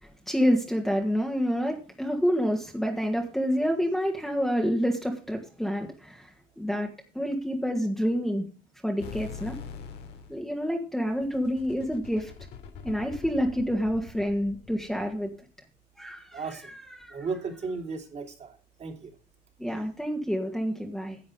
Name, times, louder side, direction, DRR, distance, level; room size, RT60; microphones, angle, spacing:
voice 1, 0.0-6.9 7.1-8.4 8.8-9.6 10.3-12.3 12.8-15.4 16.0-16.4 16.8-17.2 19.6-21.2, equal, ahead, 1 dB, 1.8 m, -28 dB
sound 1, 9.0-10.4 11.1-15.3, left 6 dB, 85° left, 2.8 m, -43 dB
voice 2, 16.3-16.7 17.1-19.1, right 4 dB, 40° right, 5 dB, 3.0 m, -35 dB
11.0 x 7.9 x 5.3 m, 0.37 s
cardioid pair, 110°, 17 cm